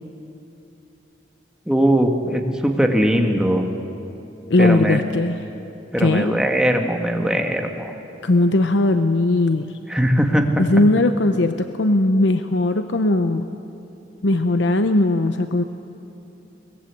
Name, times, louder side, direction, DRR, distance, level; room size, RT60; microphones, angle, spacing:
voice 1, 1.7-3.7 4.6-5.0 5.9-7.9 9.9-10.5, equal, 5° right, 3 dB, 1.7 m, -20 dB
voice 2, 4.5-5.4 6.0-6.3 8.2-9.7 10.6-13.5 14.2-15.6, left 2 dB, 85° left, 9 dB, 0.8 m, -18 dB
22.5 x 20.5 x 8.3 m, 2.9 s
head